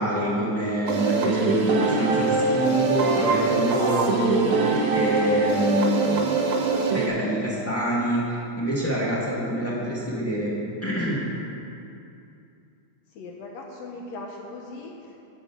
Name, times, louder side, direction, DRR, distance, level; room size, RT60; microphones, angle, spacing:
voice 1, 0.0-6.4 6.9-10.5 10.8-11.2, equal, 10° left, -7 dB, 0.9 m, -26 dB
sound 1, 0.9-7.1, right 4 dB, 65° right, 1.4 m, -23 dB
voice 2, 13.1-15.2, left 2 dB, 70° left, 0 dB, 1.7 m, -39 dB
9.3 x 8.6 x 6.0 m, 2.6 s
omnidirectional pair, 3.8 m